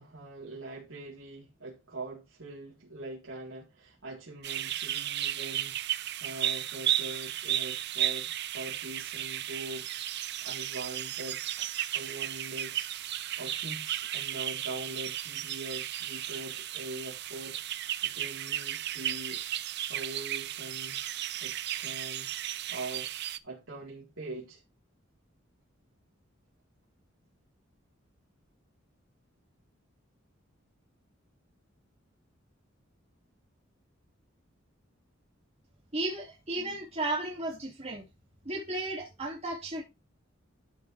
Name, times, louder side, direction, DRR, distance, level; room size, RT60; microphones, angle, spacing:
voice 1, 0.0-5.8 6.2-13.0 13.4-19.4 19.9-21.0 21.4-22.3 22.7-23.2 23.4-24.6, right 2 dB, 90° right, 3.8 m, -43 dB
sound 1, 4.4-23.4, right 12 dB, 60° right, 0.7 m, -34 dB
voice 2, 35.9-38.0 38.4-39.8, right 2 dB, 35° right, 2.5 m, -34 dB
12.5 x 7.5 x 3.4 m
head